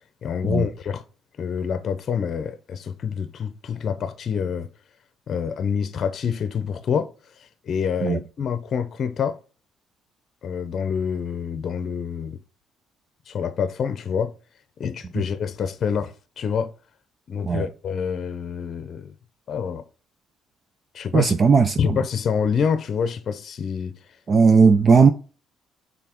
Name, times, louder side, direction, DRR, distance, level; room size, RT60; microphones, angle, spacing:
voice 1, 0.2-1.0 1.4-4.7 5.3-7.1 7.4-9.4 10.4-12.4 13.3-14.3 14.8-16.7 17.3-19.1 19.5-19.8 20.9-21.3 21.8-23.9, left 7 dB, 45° left, 0.7 m, -27 dB
voice 2, 21.1-22.0 24.3-25.1, right 5 dB, 35° right, 0.5 m, -16 dB
5.8 x 4.0 x 4.4 m
cardioid pair, 130°, 0 cm